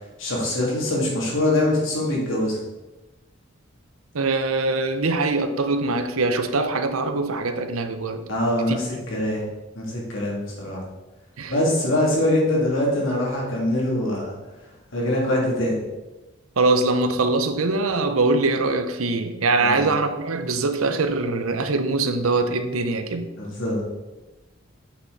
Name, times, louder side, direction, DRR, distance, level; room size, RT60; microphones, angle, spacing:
voice 1, 0.2-2.6 8.3-9.4 9.8-10.8 11.5-14.3 14.9-15.8 19.6-19.9 23.4-23.8, left 1 dB, 70° left, -3 dB, 2.5 m, -23 dB
voice 2, 4.1-8.2 8.7-8.8 11.4-11.5 16.6-23.3, right 3 dB, 85° right, 9 dB, 0.7 m, -23 dB
8.4 x 5.8 x 4.0 m, 1.1 s
head